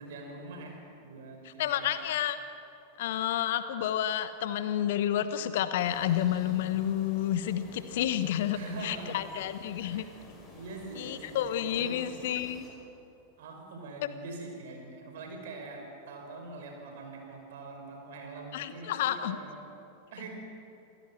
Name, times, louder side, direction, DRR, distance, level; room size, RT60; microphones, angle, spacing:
voice 1, 0.0-1.9 8.5-9.3 9.8-10.0 10.5-11.4 11.7-12.2 13.4-19.5 20.1-20.3, right 2 dB, 55° right, 2 dB, 5.7 m, -43 dB
voice 2, 1.6-2.4 3.0-8.6 8.8-10.0 11.0-12.7 18.5-19.4, left 11 dB, 55° left, 12 dB, 1.2 m, -30 dB
sound 1, 5.7-12.7, left 2 dB, 25° left, 6.0 m, -52 dB
28.0 x 16.5 x 7.6 m, 2.7 s
figure-of-eight pair, 90°, 0 cm